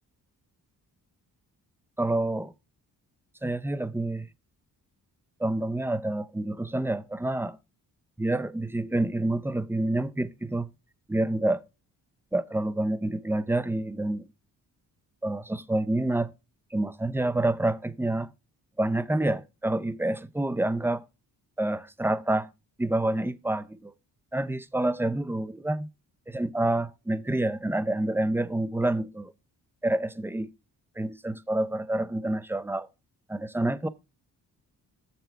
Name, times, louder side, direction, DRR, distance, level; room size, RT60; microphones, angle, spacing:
voice 1, 2.0-2.5 3.4-4.3 5.4-7.6 8.2-10.7 11.1-11.6 12.3-14.3 15.2-16.3 16.7-18.3 18.8-21.0 21.6-22.5 22.8-23.9 24.3-25.9 26.3-29.3 29.8-30.5 31.0-32.9 33.3-33.9, right 1 dB, 5° right, 0.5 m, -28 dB
6.8 x 6.6 x 4.4 m
cardioid pair, 65°, 39 cm